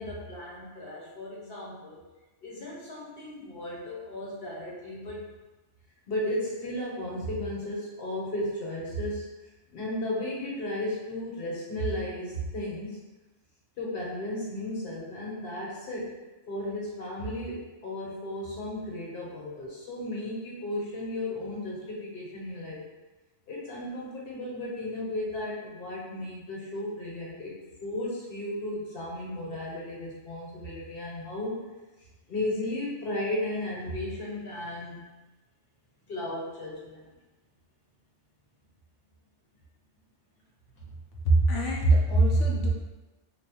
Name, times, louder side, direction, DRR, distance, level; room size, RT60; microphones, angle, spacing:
voice 1, 0.0-2.0 2.4-5.3 6.1-13.0 13.8-16.1 16.5-22.8 23.5-31.6 32.0-35.0 36.1-37.0 40.8-40.9, left 1 dB, 55° left, -5 dB, 1.1 m, -35 dB
voice 2, 41.2-42.7, right 2 dB, 85° left, -2 dB, 1.1 m, -22 dB
3.4 x 2.5 x 3.0 m, 1.1 s
omnidirectional pair, 1.2 m